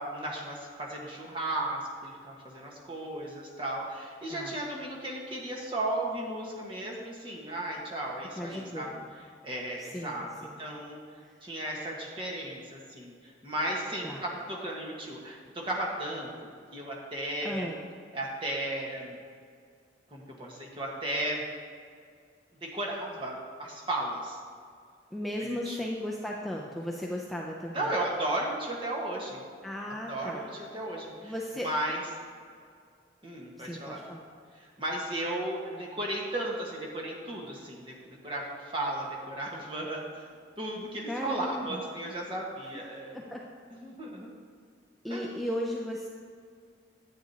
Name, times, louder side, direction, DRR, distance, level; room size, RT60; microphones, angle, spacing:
voice 1, 0.0-8.9 9.4-11.0 11.4-17.7 18.1-19.2 20.1-21.4 22.6-24.4 25.4-25.9 27.7-29.4 30.1-32.0 33.2-34.0 34.5-40.3 40.6-43.2 43.7-44.3 45.1-45.4, right 1 dB, 30° right, -2 dB, 1.4 m, -35 dB
voice 2, 8.4-9.1 9.8-10.6 11.2-11.3 14.0-14.2 17.4-17.8 25.1-27.9 29.6-30.5 31.2-31.7 33.6-34.3 41.1-41.8 43.1-43.4 45.0-46.1, equal, ahead, -2 dB, 0.4 m, -36 dB
10.0 x 8.8 x 2.8 m, 2.2 s
head